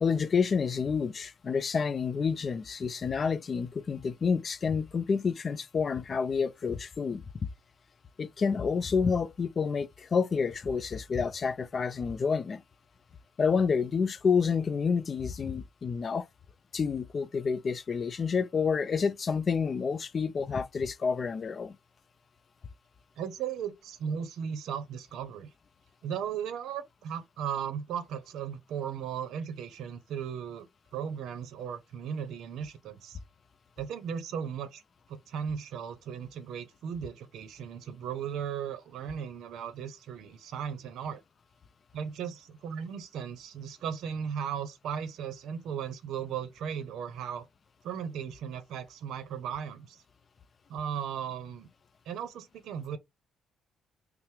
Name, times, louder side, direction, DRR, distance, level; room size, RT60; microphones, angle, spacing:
voice 1, 0.0-7.2 8.2-12.6 13.4-16.3 16.7-21.8, left 5 dB, 40° left, 0.4 m, -29 dB
voice 2, 23.2-25.5 26.0-30.7 30.9-33.2 33.8-34.8 35.1-41.2 41.9-47.5 47.8-50.0 50.7-51.7 52.1-53.0, right 8 dB, 75° right, 0.6 m, -36 dB
5.5 x 2.0 x 3.2 m
cardioid pair, 95°, 0 cm